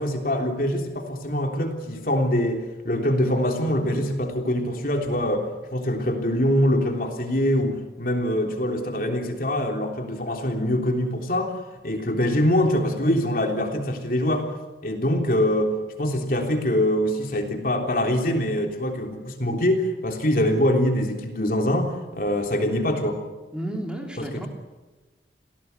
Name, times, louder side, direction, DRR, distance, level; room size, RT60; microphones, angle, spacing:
voice 1, 0.0-5.5 5.7-11.5 11.8-14.5 14.8-23.2 24.2-24.5, left 1 dB, 50° left, 3 dB, 3.4 m, -24 dB
voice 2, 23.5-24.5, right 1 dB, 5° right, 1 dB, 3.4 m, -32 dB
29.0 x 17.5 x 8.3 m, 1.2 s
head